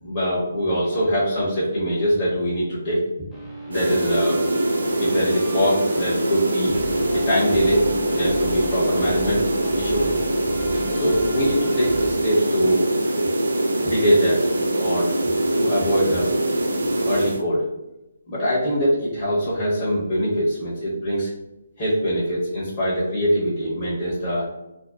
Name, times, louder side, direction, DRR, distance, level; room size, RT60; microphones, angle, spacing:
voice 1, 0.0-3.0 3.7-4.4 5.0-6.7 7.1-9.4 9.7-10.0 10.9-12.8 13.8-14.5 14.8-15.1 15.5-16.3 17.1-17.7 18.3-21.3 21.8-24.5, equal, 25° left, -9 dB, 0.9 m, -23 dB
sound 1, 3.3-12.1, right 1 dB, 5° left, 0.5 m, -36 dB
sound 2, 3.7-17.4, right 1 dB, 70° right, 0.4 m, -23 dB
2.5 x 2.2 x 2.4 m, 0.94 s
figure-of-eight pair, 140°, 0 cm